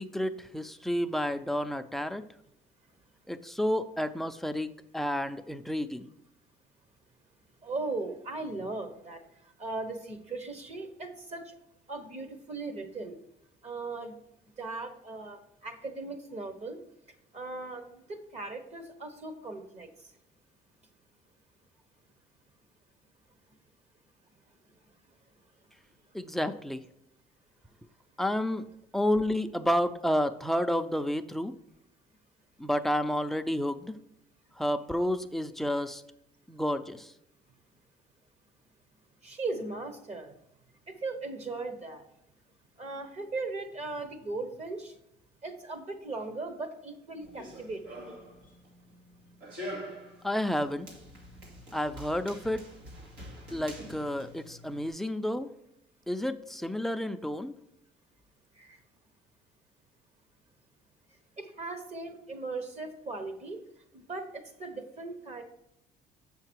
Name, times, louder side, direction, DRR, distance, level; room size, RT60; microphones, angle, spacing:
voice 1, 0.0-2.2 3.3-6.1 26.1-26.9 28.2-28.7 28.9-31.5 32.6-33.9 34.6-36.0 36.5-37.1 50.2-50.9 51.7-52.6 53.5-55.5 56.1-57.6, left 1 dB, ahead, 8 dB, 0.4 m, -30 dB
voice 2, 7.6-11.5 11.9-13.2 13.6-14.1 14.6-16.8 17.3-19.9 39.2-40.3 40.9-42.0 42.8-45.0 45.4-48.0 58.6-58.8 61.4-63.6 63.9-65.4, right 3 dB, 40° right, 8 dB, 1.1 m, -38 dB
Run, 47.2-54.9, equal, 90° right, 2.2 m, -45 dB
7.2 x 5.8 x 4.5 m, 0.81 s
cardioid pair, 110°, 17 cm